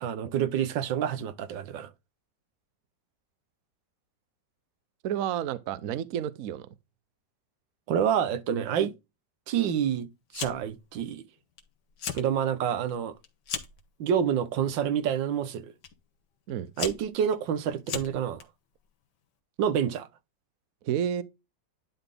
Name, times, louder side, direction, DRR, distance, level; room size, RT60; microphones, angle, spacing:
voice 1, 0.0-1.9 7.9-8.9 9.5-10.1 10.3-11.2 12.1-13.1 14.0-15.7 16.8-18.4 19.6-20.1, right 8 dB, 85° right, 1.6 m, -28 dB
voice 2, 5.0-6.7 16.5-16.7 20.8-21.2, right 10 dB, 60° right, 1.0 m, -30 dB
Fire, 10.3-10.8 11.1-11.6 11.9-12.3 12.7-13.8 14.6-15.0 15.8-15.9 16.5-18.4, left 7 dB, 70° left, 1.9 m, -36 dB
11.0 x 4.0 x 3.5 m
omnidirectional pair, 2.0 m